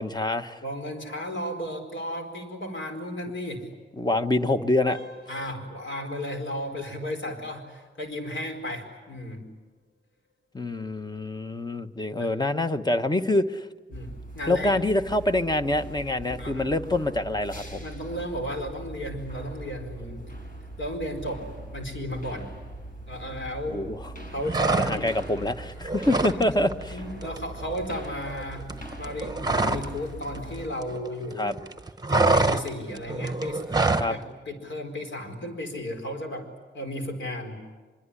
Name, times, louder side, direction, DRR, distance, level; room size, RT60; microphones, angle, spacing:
voice 1, 0.0-0.6 4.0-5.0 10.5-13.7 14.5-17.8 23.7-24.0 24.7-27.0 31.4-31.5 34.0-34.1, left 1 dB, 20° left, 9 dB, 1.1 m, -26 dB
voice 2, 0.6-3.7 5.3-9.5 12.2-12.3 13.9-14.7 16.4-16.7 17.8-20.2 20.8-22.5 23.1-23.9 24.3-25.1 26.3-26.5 26.9-28.7 29.0-31.6 32.1-33.8 34.1-36.5 36.7-37.6, left 1 dB, 70° left, 4 dB, 4.5 m, -34 dB
sound 1, 4.8-15.5 15.9-16.1 16.7-16.8 17.3-17.4, left 1 dB, 90° left, 4.3 m, -54 dB
sound 2, 13.9-30.7, right 1 dB, 45° left, 5.9 m, -41 dB
sound 3, 24.4-25.3 25.6-26.4 26.7-26.9 27.2-30.0 30.2-31.3 31.6-34.1, right 3 dB, 20° right, 1.1 m, -25 dB
24.5 x 23.0 x 9.8 m, 1.3 s
wide cardioid pair, 100°, 20 cm